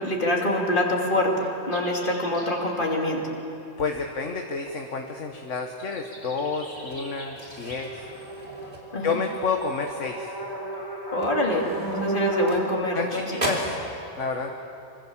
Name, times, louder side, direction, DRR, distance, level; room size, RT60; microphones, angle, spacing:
voice 1, 0.0-3.2 8.9-9.2 11.1-11.7 12.0-13.3, left 1 dB, 45° left, -1 dB, 3.2 m, -25 dB
sound 1, 1.7-2.7 5.8-12.7, right 1 dB, 15° left, 5.1 m, -33 dB
sound 2, 2.6-2.7 3.6-3.7 4.5-4.8 6.4-6.5 8.5-8.7 9.6-9.9 10.7-10.9 12.2-12.3 12.9-13.0 13.3-13.4, equal, 60° right, 8.3 m, -50 dB
voice 2, 3.8-8.1 9.0-10.3 12.9-13.8 14.2-14.5, left 4 dB, 85° left, 3 dB, 1.7 m, -30 dB
sound 3, 6.7-9.3 9.7-10.0 10.4-10.5 11.1-13.0 13.3-13.9, right 1 dB, 45° right, 3.5 m, -36 dB
25.5 x 25.0 x 7.4 m, 2.8 s
omnidirectional pair, 1.2 m